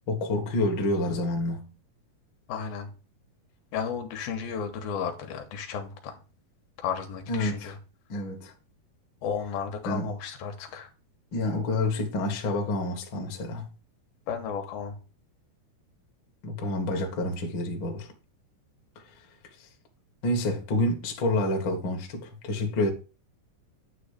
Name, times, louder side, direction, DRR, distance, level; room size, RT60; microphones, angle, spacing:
voice 1, 0.1-1.7 7.3-7.7 8.1-8.5 9.8-10.1 11.3-13.6 16.4-18.1 20.2-22.9, left 1 dB, 55° left, 1.3 m, -28 dB
voice 2, 2.5-2.9 3.7-6.2 6.8-7.8 9.2-10.9 14.3-15.0, left 7 dB, 75° left, 2.7 m, -33 dB
9.3 x 3.1 x 6.5 m
omnidirectional pair, 4.5 m